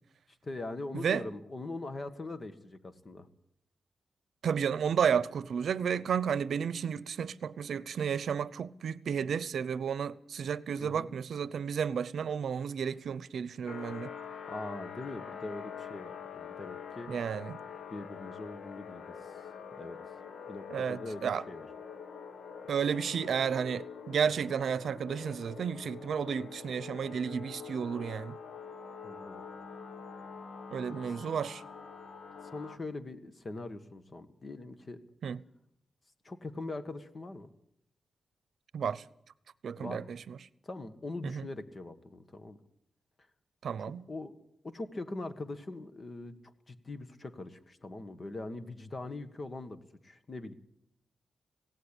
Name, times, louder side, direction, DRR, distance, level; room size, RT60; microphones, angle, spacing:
voice 1, 0.4-3.3 10.8-11.1 14.5-17.1 17.9-19.3 19.8-20.0 20.5-21.7 29.0-29.4 31.0-31.1 32.4-35.0 36.2-37.5 39.7-40.1 40.6-42.6 43.8-44.4 44.6-46.3 46.7-50.5, left 2 dB, 35° left, 1.6 m, -42 dB
voice 2, 0.9-1.3 4.4-14.1 17.1-17.6 20.7-21.4 22.7-28.4 30.7-31.6 35.2-35.4 38.7-39.0 39.6-40.4 41.2-41.5 43.6-44.1, right 7 dB, 80° right, 0.7 m, -32 dB
sound 1, 13.7-32.8, left 6 dB, 70° left, 1.5 m, -45 dB
17.5 x 17.0 x 10.0 m
wide cardioid pair, 135°, 0 cm